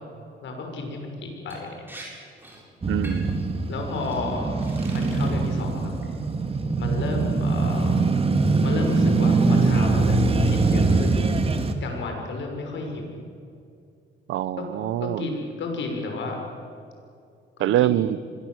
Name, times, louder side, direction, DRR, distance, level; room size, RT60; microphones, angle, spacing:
voice 1, 0.4-1.9 3.7-6.0 6.8-8.0 8.6-11.3 11.8-13.2 15.0-16.4 17.6-17.9, left 3 dB, 70° left, 2 dB, 6.4 m, -32 dB
Liquid, 1.5-1.6 1.9-2.1 2.4-2.6 3.0-3.4 4.0-4.2 4.6-5.5 5.9-6.3, right 1 dB, 10° right, 7.8 m, -43 dB
Male speech man speaking / Motorcycle / Idling, 2.8-11.7, right 3 dB, 30° right, 2.4 m, -22 dB
voice 2, 2.9-3.4 14.3-15.3 17.6-18.2, right 13 dB, 85° right, 17 dB, 0.9 m, -24 dB
26.0 x 21.5 x 8.0 m, 2.4 s
cardioid pair, 90°, 20 cm